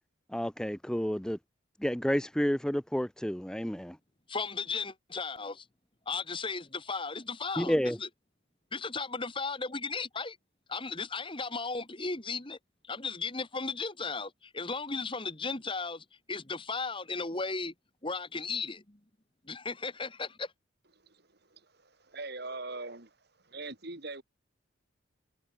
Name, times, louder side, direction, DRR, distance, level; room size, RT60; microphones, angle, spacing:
voice 1, 0.3-1.4 1.8-4.0 7.6-8.0, equal, 5° left, 0.5 m, -30 dB
voice 2, 4.3-5.7 6.1-8.1 8.7-10.4 10.7-12.6 12.8-17.7 18.0-19.0 19.4-20.5, left 4 dB, 25° left, 2.0 m, -35 dB
voice 3, 21.0-24.2, right 3 dB, 50° right, 2.8 m, -43 dB
head